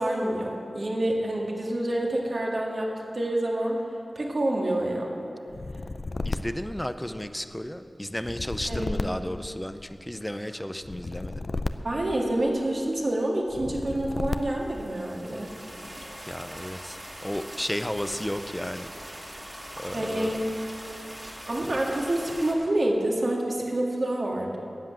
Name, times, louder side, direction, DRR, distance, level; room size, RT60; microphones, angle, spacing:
voice 1, 0.0-3.8 4.2-5.1 8.7-9.1 11.8-15.5 19.9-20.6 21.5-24.6, right 1 dB, 50° right, -1 dB, 2.0 m, -27 dB
sound 1, 5.5-7.5 8.2-10.1 10.8-12.7 13.5-14.8, left 3 dB, 55° left, 0.5 m, -34 dB
voice 2, 6.2-11.4 16.2-18.9 19.8-20.5, equal, 10° left, 10 dB, 0.6 m, -33 dB
sound 2, 14.2-22.5, equal, 15° right, 2.1 m, -42 dB
13.5 x 7.9 x 9.0 m, 2.7 s
wide cardioid pair, 95°, 0 cm